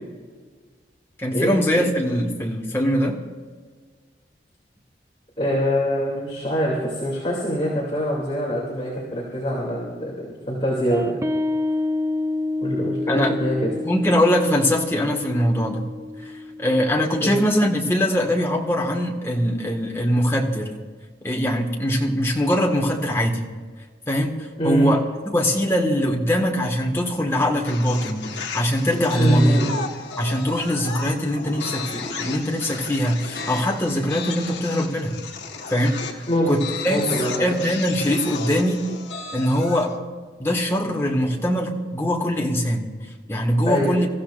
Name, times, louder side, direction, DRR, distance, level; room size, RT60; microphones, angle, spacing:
voice 1, 1.2-3.2 13.1-13.3 13.8-15.9 16.2-16.3 16.6-20.7 21.2-23.5 24.1-24.4 24.6-25.0 25.3-28.3 28.5-29.6 30.2-35.2 35.7-37.1 37.4-38.8 39.3-39.9 40.4-42.9 43.3-44.1, equal, 15° left, -1 dB, 1.8 m, -22 dB
voice 2, 5.4-11.1 12.6-13.7 17.2-17.4 24.6-24.9 29.2-29.8 36.3-36.5 36.9-37.5 43.7-43.9, equal, 30° left, -5 dB, 2.8 m, -24 dB
sound 1, 10.9-17.8, left 2 dB, 15° right, 0.5 m, -29 dB
sound 2, 27.6-40.0, left 4 dB, 85° left, 1.5 m, -34 dB
27.5 x 14.5 x 2.6 m, 1.5 s
head